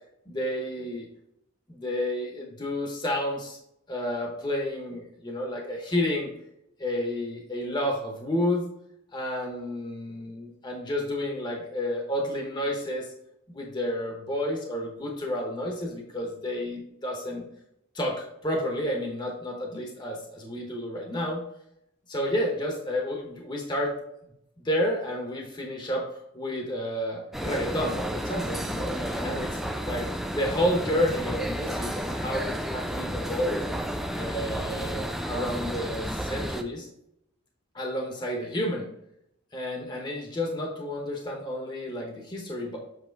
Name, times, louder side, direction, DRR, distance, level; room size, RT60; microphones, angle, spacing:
voice 1, 0.3-1.1 1.7-3.6 3.9-6.3 6.8-8.7 9.1-13.1 13.5-17.5 17.9-21.4 22.1-23.9 24.6-29.6 29.8-30.1 30.3-33.6 34.2-36.9 37.7-38.9 39.5-42.8, left 1 dB, 20° left, 0 dB, 0.9 m, -30 dB
sound 1, 27.3-36.6, equal, ahead, 0.4 m, -32 dB
7.7 x 3.0 x 4.5 m, 0.79 s
head